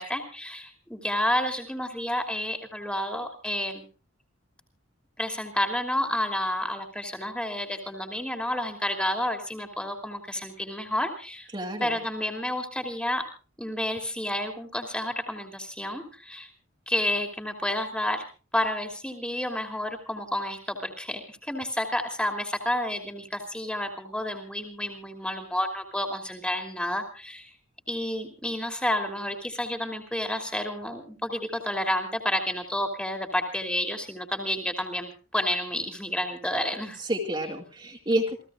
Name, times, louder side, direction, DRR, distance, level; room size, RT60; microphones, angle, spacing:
voice 1, 0.0-3.9 5.2-11.5 11.8-13.2 13.6-16.5 16.9-18.2 18.5-27.5 27.9-37.0, left 1 dB, 5° left, 5 dB, 2.8 m, -30 dB
voice 2, 11.5-12.0 37.0-38.4, right 1 dB, 20° right, 1 dB, 2.4 m, -29 dB
28.0 x 16.5 x 2.5 m, 0.36 s
head